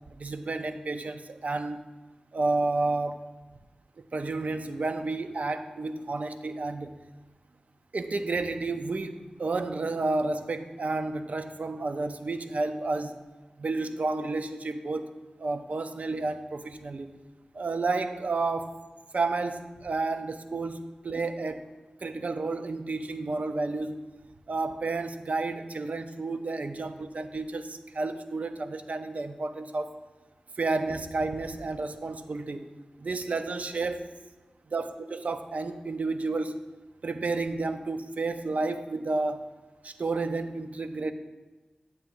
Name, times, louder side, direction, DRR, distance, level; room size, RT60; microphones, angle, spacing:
voice 1, 0.1-1.8 2.3-3.3 4.1-7.0 7.9-13.2 13.6-15.1 15.4-17.1 17.5-18.7 19.1-21.7 22.0-24.0 24.5-30.0 30.6-32.7 33.0-34.1 34.7-36.6 37.0-39.5 39.8-41.1, right 3 dB, 65° right, 9 dB, 0.5 m, -31 dB
9.8 x 6.9 x 2.6 m, 1.2 s
cardioid pair, 45°, 3 cm